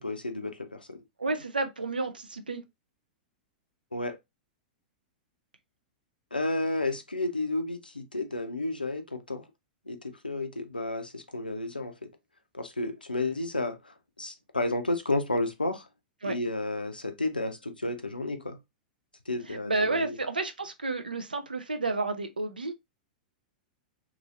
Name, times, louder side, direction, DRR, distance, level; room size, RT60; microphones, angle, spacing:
voice 1, 0.0-1.0 3.9-4.2 6.3-9.5 9.9-12.1 12.5-15.9 16.2-18.6 19.3-20.2, left 2 dB, 90° left, 0.4 m, -32 dB
voice 2, 1.2-2.6 16.2-16.4 19.5-22.7, right 3 dB, 80° right, 0.4 m, -31 dB
3.0 x 2.6 x 2.4 m
figure-of-eight pair, 100°, 5 cm